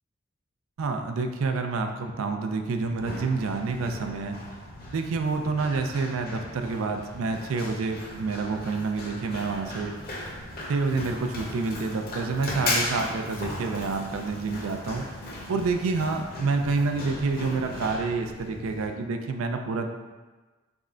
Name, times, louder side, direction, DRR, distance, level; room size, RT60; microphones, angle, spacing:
voice 1, 0.8-4.4 4.8-9.9 10.4-15.1 15.5-19.9, right 4 dB, 80° right, 5 dB, 0.4 m, -28 dB
Run, 2.8-18.9, left 1 dB, 45° left, 0.8 m, -37 dB
3.5 x 3.1 x 3.7 m, 1.3 s
head